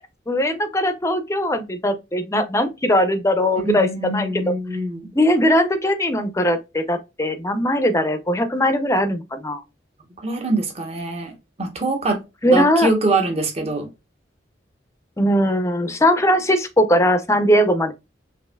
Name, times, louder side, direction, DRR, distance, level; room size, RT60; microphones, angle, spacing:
voice 1, 0.3-3.9 4.1-4.5 5.2-9.6 12.4-12.9 15.2-17.9, equal, 15° left, 0.5 m, -19 dB
voice 2, 3.6-5.1 10.2-11.3 11.6-12.2 12.5-13.9, right 2 dB, 35° right, 0.9 m, -23 dB
5.4 x 2.6 x 2.2 m
head